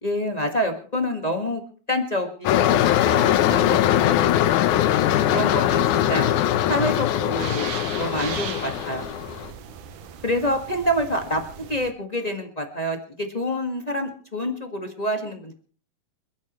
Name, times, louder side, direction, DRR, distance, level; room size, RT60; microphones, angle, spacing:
voice 1, 0.0-1.6 1.9-4.2 5.3-6.2 6.7-7.7 8.0-9.1 10.2-11.4 11.7-15.5, equal, 40° left, 3 dB, 0.5 m, -27 dB
sound 1, 2.5-9.5, left 12 dB, 75° left, 2.1 m, -21 dB
sound 2, 2.8-11.9, right 8 dB, 70° right, 2.5 m, -39 dB
29.0 x 10.5 x 3.1 m, 0.41 s
omnidirectional pair, 3.9 m